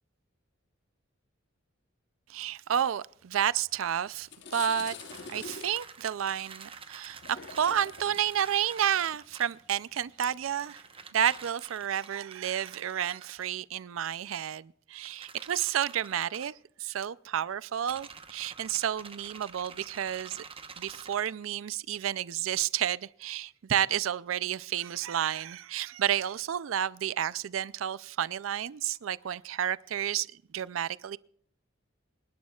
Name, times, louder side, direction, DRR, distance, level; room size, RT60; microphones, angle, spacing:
voice 1, 2.3-10.8 11.1-16.5 16.8-20.4 20.8-30.3 30.5-31.2, right 10 dB, 90° right, 0.4 m, -31 dB
sound 1, 3.6-3.8 4.1-11.4, left 5 dB, 60° left, 1.0 m, -47 dB
sound 2, 4.6-9.6 10.6-13.5 15.0-16.5 17.8-21.2, right 5 dB, 30° right, 0.9 m, -48 dB
26.0 x 11.5 x 2.3 m
head